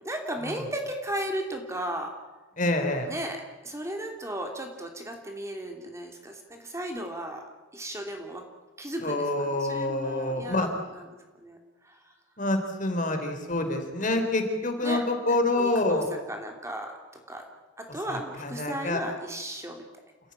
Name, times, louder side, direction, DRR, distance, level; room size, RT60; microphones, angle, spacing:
voice 1, 0.0-2.1 3.1-7.4 7.7-8.4 8.8-11.1 11.4-11.6 11.8-12.0 14.0-14.2 14.8-15.0 15.5-16.9 17.3-17.4 17.8-19.8, right 1 dB, 15° right, 3 dB, 2.9 m, -35 dB
voice 2, 2.6-3.1 9.0-10.7 12.4-16.1 18.1-19.0, left 2 dB, 40° left, 5 dB, 4.0 m, -27 dB
29.0 x 16.5 x 10.0 m, 1.2 s
head